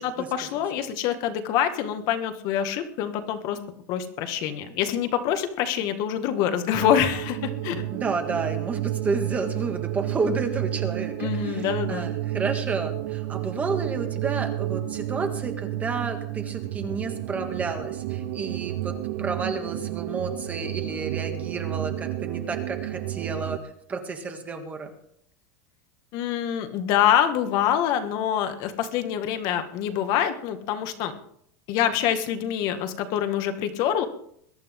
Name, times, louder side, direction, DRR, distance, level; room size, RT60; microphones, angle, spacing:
voice 1, 0.0-3.6 3.9-7.8 11.2-12.1 26.1-31.1 31.7-34.1, left 9 dB, 40° left, 8 dB, 1.7 m, -25 dB
sound 1, 6.7-23.6, right 15 dB, 60° right, 1.0 m, -31 dB
voice 2, 7.9-23.6 23.9-24.9, right 4 dB, 15° right, 5 dB, 1.7 m, -31 dB
22.0 x 11.5 x 3.7 m, 0.68 s
supercardioid pair, 165°, 10 cm